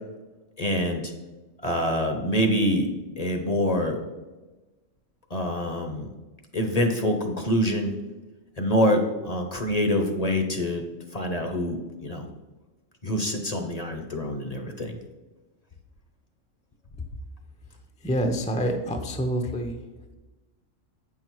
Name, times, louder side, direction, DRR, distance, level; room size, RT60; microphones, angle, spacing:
voice 1, 0.6-1.1 1.6-2.9 3.2-4.0 5.3-6.1 6.5-7.9 8.6-10.8 11.1-12.3 13.0-15.0, equal, 35° left, 4 dB, 0.7 m, -25 dB
voice 2, 18.0-19.8, equal, 10° left, 5 dB, 0.4 m, -27 dB
8.6 x 5.8 x 4.6 m, 1.2 s
omnidirectional pair, 1.3 m